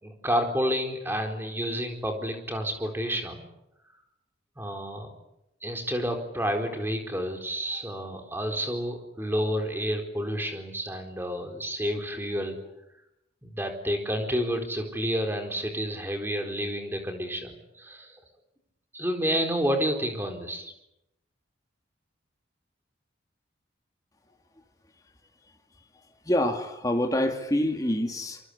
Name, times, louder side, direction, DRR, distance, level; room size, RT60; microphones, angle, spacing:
voice 1, 0.0-3.4 4.6-5.1 5.6-12.6 13.4-18.2 18.9-20.7, equal, 10° right, 4 dB, 4.4 m, -30 dB
voice 2, 26.2-28.4, left 1 dB, 20° left, 3 dB, 2.5 m, -26 dB
26.5 x 24.5 x 8.4 m, 0.85 s
head